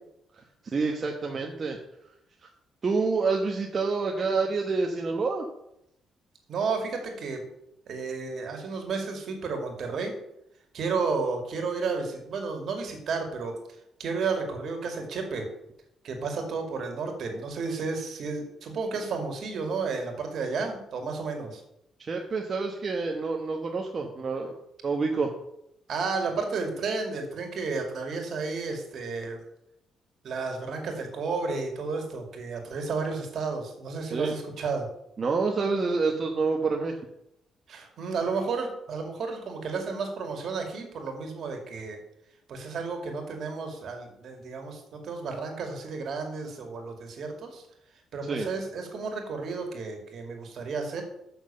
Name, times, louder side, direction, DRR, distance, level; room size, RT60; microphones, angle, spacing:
voice 1, 0.6-1.8 2.8-5.5 22.0-24.5 24.8-25.3 34.0-34.3 35.2-36.9 48.3-48.5, right 4 dB, 40° right, 1 dB, 1.2 m, -27 dB
voice 2, 6.5-7.4 7.9-10.1 10.7-13.5 14.0-15.5 16.0-21.6 25.9-29.4 30.2-34.9 37.7-42.0 42.5-47.6 48.1-51.0, right 4 dB, 60° right, 3 dB, 2.3 m, -32 dB
7.2 x 6.1 x 6.8 m, 0.80 s
cardioid pair, 90°, 0 cm